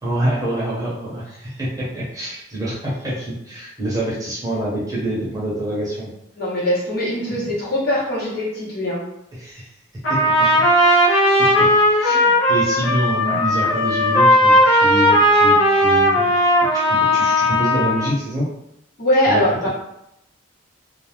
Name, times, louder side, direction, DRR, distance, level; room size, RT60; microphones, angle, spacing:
voice 1, 0.0-6.1 9.3-9.7 10.1-10.2 10.5-12.1 12.5-16.3 16.7-18.5 19.3-19.7, right 1 dB, 20° right, -7 dB, 0.8 m, -26 dB
voice 2, 6.4-9.0 12.1-12.2 19.0-19.7, left 1 dB, 50° left, -6 dB, 0.9 m, -21 dB
Trumpet, 10.0-18.1, equal, 80° left, 0.6 m, -16 dB
2.3 x 2.2 x 3.2 m, 0.80 s
head